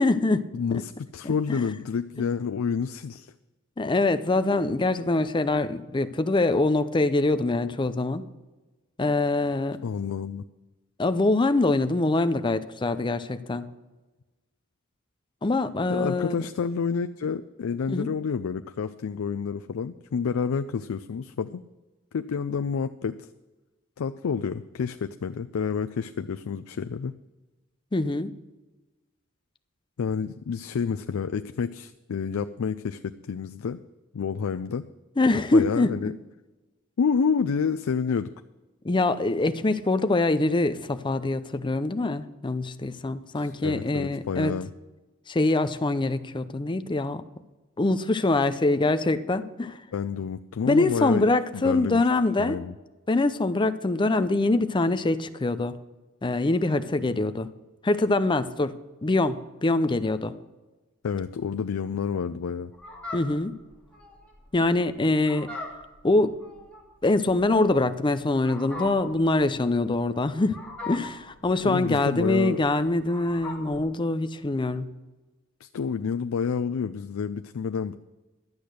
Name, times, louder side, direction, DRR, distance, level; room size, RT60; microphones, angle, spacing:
voice 1, 0.0-0.5 1.2-1.7 3.8-8.2 9.0-9.8 11.0-13.7 15.4-16.4 17.9-18.1 27.9-28.3 35.2-35.9 38.8-44.5 45.3-47.2 47.8-49.8 50.6-52.6 53.1-55.8 56.2-57.5 57.8-58.7 59.0-60.3 63.1-63.5 64.5-65.5 66.0-66.3 67.0-70.6 70.9-74.9, left 2 dB, 25° left, 12 dB, 0.5 m, -24 dB
voice 2, 0.5-3.3 9.8-10.4 15.9-21.6 22.1-23.2 24.0-27.1 30.0-33.8 34.1-34.8 35.5-36.1 37.0-38.3 43.4-44.7 49.9-52.0 52.4-52.7 61.0-62.7 71.6-72.6 75.6-77.9, left 6 dB, 80° left, 9 dB, 0.4 m, -29 dB
Fowl, 62.7-73.8, left 3 dB, 5° left, 2.3 m, -41 dB
12.0 x 8.5 x 6.3 m, 1.2 s
head